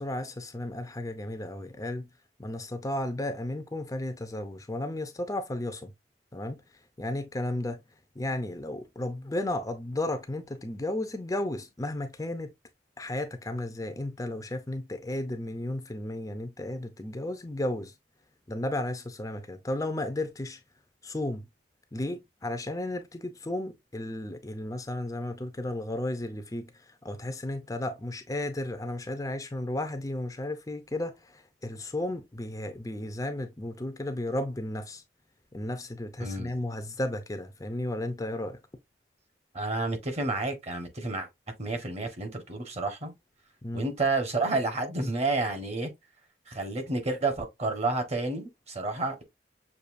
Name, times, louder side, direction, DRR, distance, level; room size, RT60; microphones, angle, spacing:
voice 1, 0.0-2.1 2.4-5.9 6.3-6.6 7.0-7.8 8.2-12.5 13.0-17.9 18.5-20.6 21.0-21.4 21.9-35.0 35.5-38.6 43.6-43.9, left 1 dB, 20° left, 0.5 m, -34 dB
voice 2, 36.2-36.5 39.5-41.3 41.6-43.1 43.7-45.9 46.5-49.2, right 3 dB, 40° right, 1.2 m, -30 dB
6.7 x 2.7 x 2.5 m
head